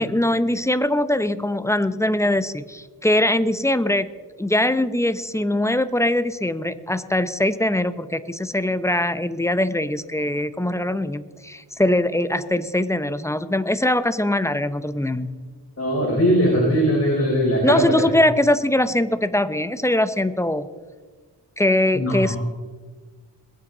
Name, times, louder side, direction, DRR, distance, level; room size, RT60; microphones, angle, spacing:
voice 1, 0.0-4.1 4.4-15.3 17.6-20.7 21.6-22.4, left 1 dB, 5° left, 13 dB, 0.8 m, -22 dB
voice 2, 15.8-17.9 21.9-22.4, equal, 35° left, -4 dB, 4.4 m, -20 dB
21.0 x 9.3 x 4.0 m, 1.5 s
cardioid pair, 55°, 41 cm